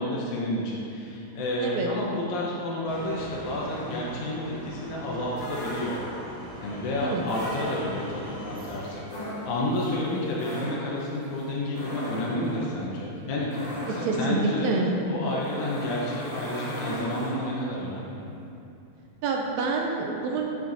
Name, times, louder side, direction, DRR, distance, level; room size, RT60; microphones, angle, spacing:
voice 1, 0.0-6.0 6.6-9.0 9.5-14.7 15.1-18.2, left 1 dB, 80° left, -5 dB, 2.2 m, -30 dB
sound 1, 2.9-9.0, right 1 dB, 50° right, 0.8 m, -41 dB
sound 2, 5.4-6.4 7.2-8.3 9.0-17.8, equal, 60° left, 1.3 m, -38 dB
voice 2, 13.9-14.9 19.2-20.5, right 3 dB, 80° right, 0 dB, 1.8 m, -27 dB
7.5 x 7.1 x 2.7 m, 2.8 s
omnidirectional pair, 3.4 m